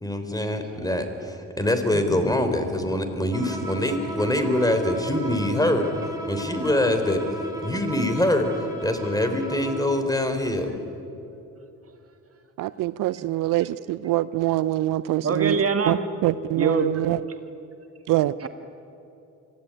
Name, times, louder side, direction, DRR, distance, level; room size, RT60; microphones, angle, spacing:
voice 1, 0.0-5.9 6.2-7.2 7.6-10.7, left 1 dB, 10° left, 7 dB, 3.8 m, -24 dB
voice 2, 1.9-2.3 13.2-13.3 13.6-13.7 15.2-16.1 16.5-17.1 18.4-18.5, right 5 dB, 40° right, 7 dB, 1.9 m, -25 dB
Bowed string instrument, 3.3-10.0, equal, 10° right, 5.1 m, -35 dB
voice 3, 12.6-15.6 15.9-16.0 16.2-17.2 18.1-18.3, right 16 dB, 65° right, 17 dB, 0.6 m, -24 dB
24.0 x 15.5 x 9.9 m, 2.9 s
supercardioid pair, 60°, 34 cm